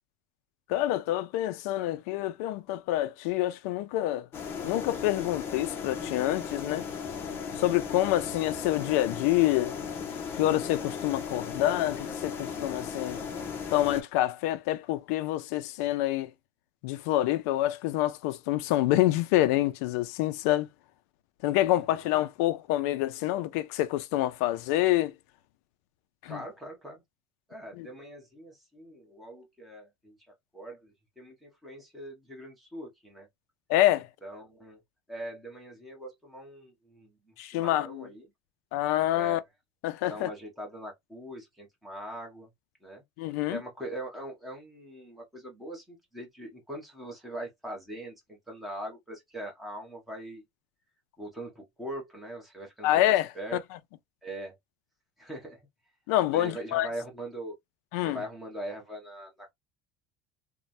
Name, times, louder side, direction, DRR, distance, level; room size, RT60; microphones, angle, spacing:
voice 1, 0.7-4.3 4.6-6.8 7.6-9.8 10.3-13.2 13.7-16.3 16.8-20.7 21.4-25.1 26.2-26.4 27.8-27.9 33.7-34.1 37.4-38.0 38.7-39.4 39.8-40.3 43.2-43.6 52.8-53.3 56.1-56.9 57.9-58.2, left 15 dB, 85° left, 0.4 m, -27 dB
sound 1, 4.3-14.0, left 6 dB, 30° left, 0.6 m, -36 dB
voice 2, 21.7-22.1 26.3-27.0 27.5-30.2 30.5-33.3 34.2-34.8 35.1-38.3 39.1-39.4 40.1-42.5 42.8-43.0 43.5-50.4 51.2-53.1 53.3-53.6 54.2-54.5 55.2-55.6 56.3-57.6 58.0-59.5, right 1 dB, ahead, 1.0 m, -41 dB
3.2 x 2.1 x 2.5 m
cardioid pair, 170°, 8 cm